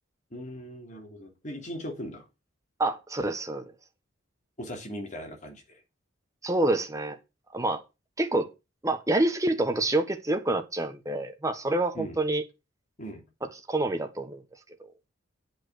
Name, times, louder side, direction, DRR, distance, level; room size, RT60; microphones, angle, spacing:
voice 1, 0.3-2.2 4.6-5.6 11.9-12.2 13.0-13.2, equal, 40° left, 2.9 m, -39 dB
voice 2, 2.8-3.6 6.4-7.2 7.5-7.8 8.2-8.5 8.8-12.4 13.4-14.4, right 2 dB, 15° right, 1.3 m, -27 dB
8.7 x 5.6 x 7.8 m
head